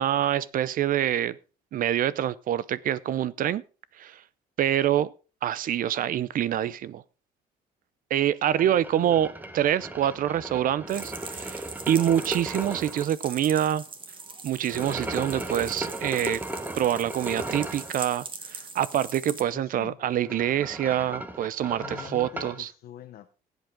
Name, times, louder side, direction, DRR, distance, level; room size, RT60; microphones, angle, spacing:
voice 1, 0.0-1.4 1.7-3.6 4.0-4.2 4.6-5.1 5.4-7.0 8.1-9.3 9.5-13.8 14.4-16.4 16.8-22.7, right 11 dB, 55° right, 0.6 m, -26 dB
sound 1, 8.5-13.0 14.7-17.9 20.0-22.6, right 1 dB, 10° right, 1.2 m, -36 dB
voice 2, 8.6-9.3 19.5-20.0 21.8-23.5, left 12 dB, 60° left, 0.9 m, -44 dB
sound 2, 10.9-19.4, right 4 dB, 30° right, 1.7 m, -41 dB
16.5 x 8.1 x 3.7 m
cardioid pair, 110°, 17 cm